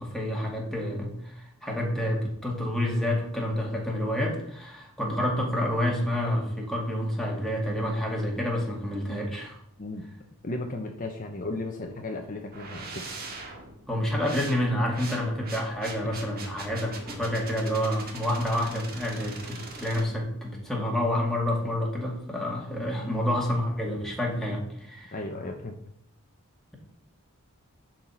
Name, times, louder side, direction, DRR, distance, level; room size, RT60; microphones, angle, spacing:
voice 1, 0.0-9.6 13.9-25.1, left 1 dB, ahead, -1 dB, 2.0 m, -28 dB
voice 2, 10.4-13.1 23.0-23.3 25.1-25.8, left 2 dB, 40° left, 3 dB, 0.8 m, -35 dB
sound 1, 12.5-20.0, right 3 dB, 45° right, 1.8 m, -41 dB
10.5 x 4.4 x 5.6 m, 0.76 s
head